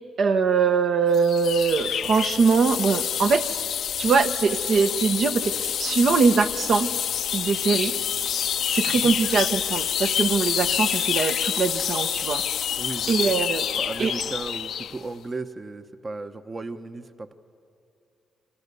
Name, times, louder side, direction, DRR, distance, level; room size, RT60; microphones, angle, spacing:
voice 1, 0.2-3.6 4.0-6.9 7.3-7.9 8.7-12.4 13.1-13.7 14.0-14.1, right 5 dB, 60° right, 7 dB, 1.0 m, -22 dB
sound 1, 1.1-15.0, left 9 dB, 70° left, 0.6 m, -27 dB
voice 2, 12.8-13.2 13.7-17.3, right 3 dB, 30° right, 9 dB, 0.9 m, -35 dB
29.0 x 25.0 x 6.9 m, 2.6 s
cardioid pair, 85°, 0 cm